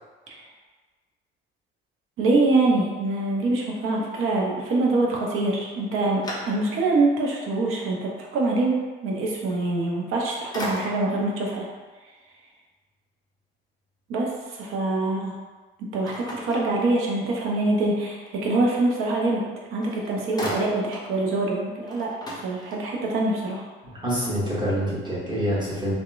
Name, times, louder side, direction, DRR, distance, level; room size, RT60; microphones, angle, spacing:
voice 1, 2.2-8.7 9.0-11.7 14.1-14.3 14.6-15.3 15.9-19.4 19.7-22.1 22.4-23.6, right 2 dB, 45° right, -2 dB, 0.6 m, -24 dB
sound 1, 5.6-7.0 7.5-7.6 9.9-10.2 10.5-11.3 16.0-17.3 19.4-19.5 19.8-21.1 21.5-21.6 21.8-23.1, equal, 15° left, 0.6 m, -36 dB
voice 2, 23.9-25.9, equal, 15° right, -8 dB, 1.1 m, -26 dB
2.8 x 2.1 x 2.3 m, 1.3 s
figure-of-eight pair, 55°, 31 cm